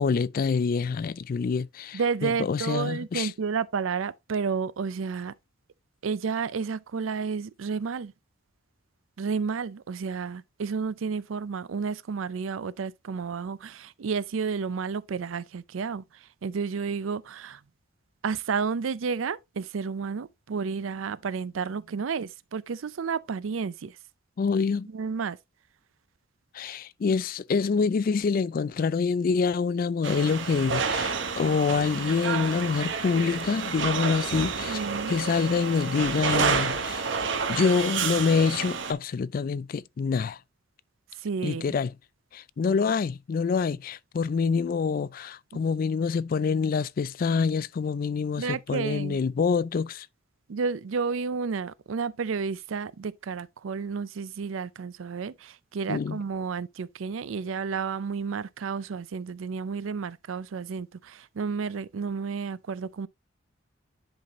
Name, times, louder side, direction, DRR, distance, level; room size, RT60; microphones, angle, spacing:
voice 1, 0.0-3.3 24.4-24.9 26.5-37.1 37.5-40.4 41.4-41.9 42.3-50.1 55.9-56.2, left 5 dB, 45° left, 0.3 m, -26 dB
voice 2, 1.9-5.3 6.0-8.1 9.2-16.0 16.4-17.6 18.2-24.0 24.9-25.4 34.7-35.1 41.2-41.7 48.4-49.2 50.5-63.1, right 5 dB, 85° right, 0.5 m, -31 dB
sound 1, 30.0-38.9, right 5 dB, 65° right, 1.1 m, -29 dB
10.5 x 4.1 x 3.0 m
head